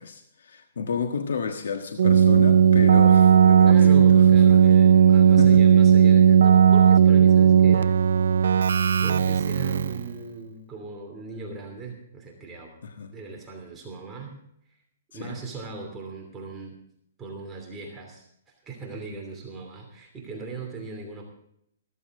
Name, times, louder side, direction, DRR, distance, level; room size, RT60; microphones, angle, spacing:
voice 1, 0.0-4.7 5.4-5.6 12.8-13.1 15.2-15.4, left 5 dB, 80° left, 5 dB, 1.5 m, -32 dB
Keyboard (musical), 2.0-10.1, right 8 dB, 80° right, 0.5 m, -16 dB
voice 2, 3.7-7.9 9.0-12.7 13.1-14.4 15.1-16.8 17.2-21.2, right 4 dB, 15° right, 0 dB, 2.9 m, -38 dB
15.0 x 14.0 x 3.8 m, 0.73 s
hypercardioid pair, 155°, 0 cm